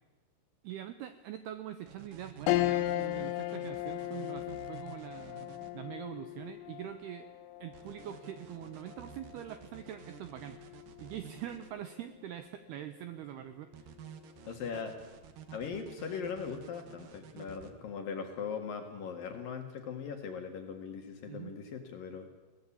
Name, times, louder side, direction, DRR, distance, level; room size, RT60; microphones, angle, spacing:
voice 1, 0.6-7.3 7.6-10.6 11.0-13.9 21.3-21.5, right 11 dB, 80° right, 11 dB, 2.3 m, -44 dB
sound 1, 1.9-5.7 7.7-11.7 13.7-17.7, right 8 dB, 65° right, 2.3 m, -51 dB
sound 2, 2.5-12.1 12.5-12.6 14.0-14.4, left 15 dB, 90° left, 3.5 m, -37 dB
voice 2, 14.4-14.9 15.5-22.3, left 6 dB, 55° left, 5 dB, 2.9 m, -40 dB
22.0 x 18.0 x 8.6 m, 1.2 s
omnidirectional pair, 5.7 m